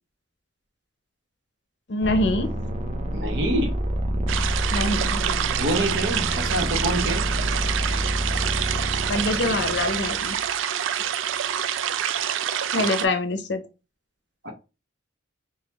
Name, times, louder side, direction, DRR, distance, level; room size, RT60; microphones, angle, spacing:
voice 1, 1.9-2.5 4.7-5.2 9.1-10.4 12.7-13.6, left 2 dB, 65° left, 0.6 m, -25 dB
sound 1, 2.0-10.5, right 1 dB, 35° right, 0.6 m, -28 dB
voice 2, 3.1-3.7 5.6-7.3 12.7-12.9 14.4-14.5, right 1 dB, 60° right, 0.9 m, -26 dB
sound 2, 4.3-13.1, right 9 dB, 85° right, 0.4 m, -27 dB
3.9 x 2.8 x 2.9 m
head